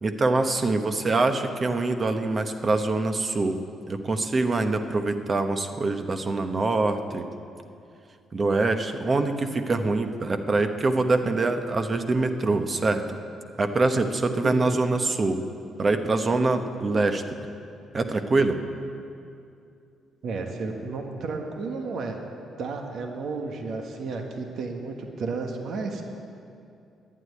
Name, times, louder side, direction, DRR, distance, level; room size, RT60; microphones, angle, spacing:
voice 1, 0.0-3.6 3.9-7.3 8.3-13.2 13.6-15.4 15.8-17.2 17.9-18.6, right 3 dB, 35° right, 7 dB, 1.0 m, -24 dB
voice 2, 14.4-14.8 20.2-22.2 22.6-26.0, right 4 dB, 65° right, 3 dB, 1.5 m, -32 dB
11.5 x 9.7 x 9.7 m, 2.5 s
cardioid pair, 90°, 0 cm